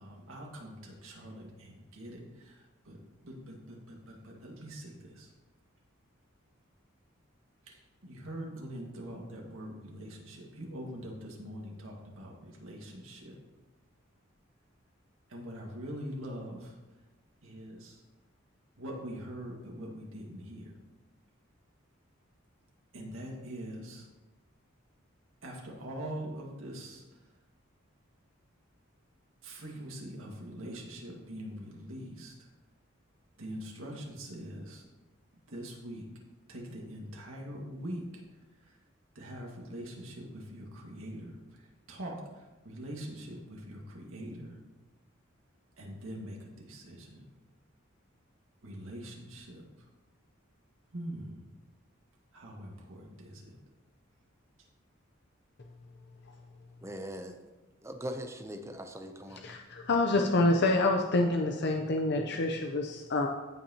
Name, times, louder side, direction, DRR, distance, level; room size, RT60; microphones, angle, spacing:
voice 1, 0.0-3.0 3.2-5.3 7.6-13.4 15.3-16.8 17.4-18.0 18.8-20.7 22.9-24.1 25.4-27.3 29.4-32.5 33.4-34.8 35.5-36.1 36.5-38.2 38.6-38.8 39.2-44.6 45.8-47.2 48.6-49.6 50.9-51.5 52.3-53.6, equal, 90° right, -1 dB, 1.9 m, -43 dB
voice 2, 56.8-57.4 57.8-59.6, equal, 15° right, 6 dB, 0.6 m, -41 dB
voice 3, 59.4-63.3, left 2 dB, 55° left, 2 dB, 0.6 m, -27 dB
15.5 x 5.8 x 2.9 m, 1.1 s
head